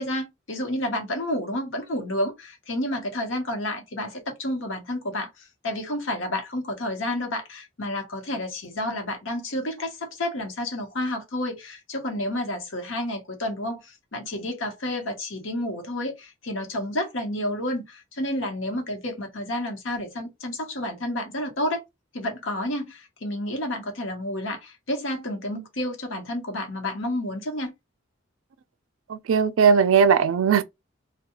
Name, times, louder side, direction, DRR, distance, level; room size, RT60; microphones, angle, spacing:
voice 1, 0.0-5.3 5.6-21.8 22.1-27.7, left 1 dB, 75° left, 1.0 m, -30 dB
voice 2, 29.1-30.6, right 6 dB, 90° right, 0.4 m, -18 dB
2.3 x 2.2 x 2.9 m
head